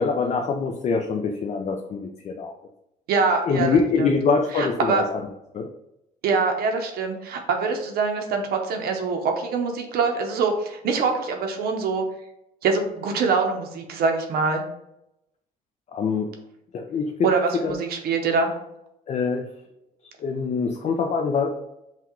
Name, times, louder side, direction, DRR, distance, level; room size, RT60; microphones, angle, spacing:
voice 1, 0.0-2.5 3.5-5.2 5.5-5.7 15.9-16.3 16.7-17.3 17.6-17.7 19.1-19.4 20.2-21.6, left 5 dB, 40° left, 4 dB, 0.5 m, -24 dB
voice 2, 3.1-4.1 4.5-5.0 6.2-12.0 12.6-14.6 17.2-18.5, right 4 dB, 65° right, 3 dB, 0.7 m, -24 dB
5.7 x 2.3 x 3.0 m, 0.84 s
cardioid pair, 110°, 17 cm